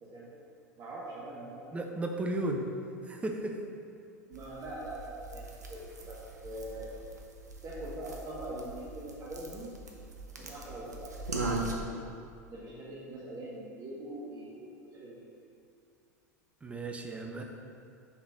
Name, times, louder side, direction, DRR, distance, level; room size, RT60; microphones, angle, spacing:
voice 1, 0.0-0.4 0.8-1.7 4.3-6.9 7.6-9.7 10.4-11.5 12.5-15.2, right 1 dB, 35° right, -6 dB, 1.1 m, -43 dB
voice 2, 1.7-2.6 3.0-3.6 16.6-17.4, right 2 dB, 15° right, 2 dB, 0.7 m, -34 dB
sound 1, 4.3-11.7, right 2 dB, 75° right, 0.7 m, -40 dB
5.9 x 4.1 x 5.4 m, 2.4 s
figure-of-eight pair, 80°, 9 cm